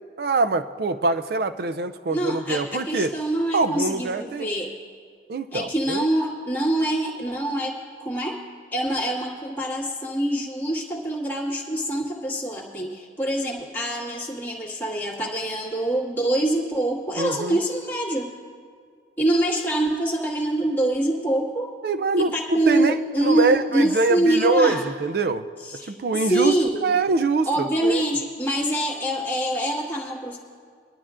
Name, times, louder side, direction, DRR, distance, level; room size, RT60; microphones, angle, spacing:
voice 1, 0.2-3.1 3.5-4.5 5.3-6.1 17.2-17.6 21.8-25.5 25.8-26.6 26.8-28.0, right 3 dB, 60° right, 10 dB, 0.4 m, -24 dB
voice 2, 2.1-4.7 5.5-8.4 8.7-18.3 19.2-21.7 22.2-24.9 25.6-26.9 27.5-30.4, right 1 dB, 10° left, -5 dB, 1.8 m, -25 dB
21.5 x 12.0 x 2.5 m, 2.2 s
head